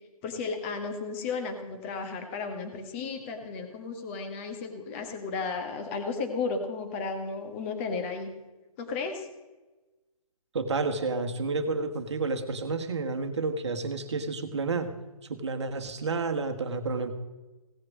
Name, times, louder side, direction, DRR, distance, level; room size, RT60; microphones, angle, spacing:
voice 1, 0.2-8.3 8.8-9.3, left 4 dB, 20° left, 5 dB, 1.4 m, -34 dB
voice 2, 10.5-14.9 15.3-17.1, right 3 dB, 50° right, 7 dB, 1.4 m, -30 dB
17.0 x 6.5 x 7.3 m, 1.1 s
figure-of-eight pair, 145°, 19 cm